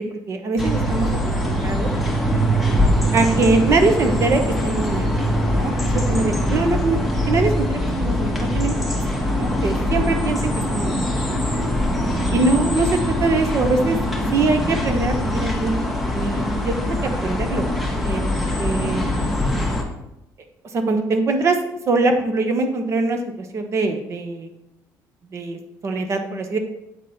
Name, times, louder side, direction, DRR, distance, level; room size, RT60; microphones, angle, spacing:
voice 1, 0.3-1.1 1.4-1.9 3.1-5.1 5.5-7.0 7.3-10.9 12.3-12.9 13.2-14.0 14.3-15.8 16.1-17.7 18.0-19.1 20.7-21.6 21.9-24.5 25.3-26.6, right 3 dB, 40° right, 6 dB, 1.0 m, -22 dB
sound 1, 0.6-19.8, equal, ahead, 1.2 m, -22 dB
8.2 x 4.0 x 4.2 m, 0.86 s
cardioid pair, 125°, 7 cm